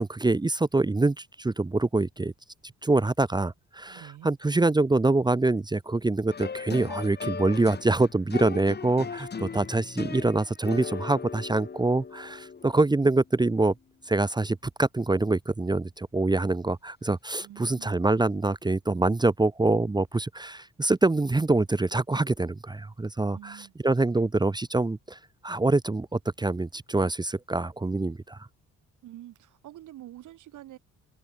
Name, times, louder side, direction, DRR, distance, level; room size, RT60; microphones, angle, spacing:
voice 1, 0.0-2.3 2.8-13.7 14.1-25.2 25.4-28.4, right 2 dB, 15° right, 0.9 m, -25 dB
voice 2, 3.9-4.3 17.4-18.0 23.3-23.7 29.0-30.8, right 14 dB, 85° right, 6.5 m, -46 dB
sound 1, 6.3-13.1 17.7-17.8, left 5 dB, 35° left, 2.1 m, -38 dB
open air
cardioid pair, 90°, 30 cm